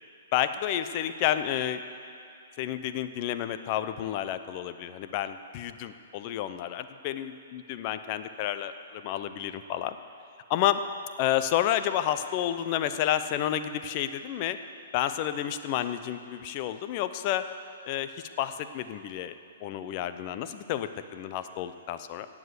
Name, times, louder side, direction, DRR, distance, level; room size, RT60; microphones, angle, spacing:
voice 1, 0.3-1.8 2.6-10.0 10.5-10.8 11.2-14.6 14.9-17.5 17.9-19.3 19.6-22.3, left 11 dB, 40° left, 10 dB, 0.8 m, -30 dB
17.5 x 7.4 x 8.2 m, 2.5 s
hypercardioid pair, 130°, 0 cm